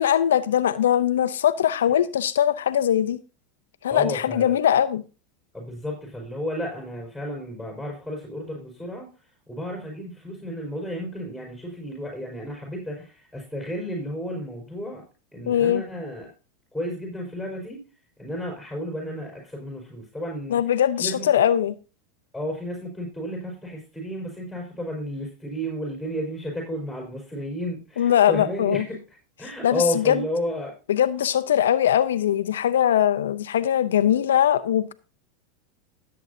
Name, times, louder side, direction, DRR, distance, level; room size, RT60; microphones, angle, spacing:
voice 1, 0.0-3.2 3.8-5.0 15.5-15.8 20.5-21.7 28.0-28.8 29.6-30.2 30.9-34.9, left 10 dB, 85° left, 0.6 m, -21 dB
voice 2, 3.9-4.6 5.5-9.1 9.5-15.0 15.3-16.3 16.7-17.8 18.2-20.6 21.0-21.3 22.3-30.7, equal, 5° right, 4.6 m, -32 dB
16.0 x 7.8 x 2.7 m
hypercardioid pair, 105°, 0 cm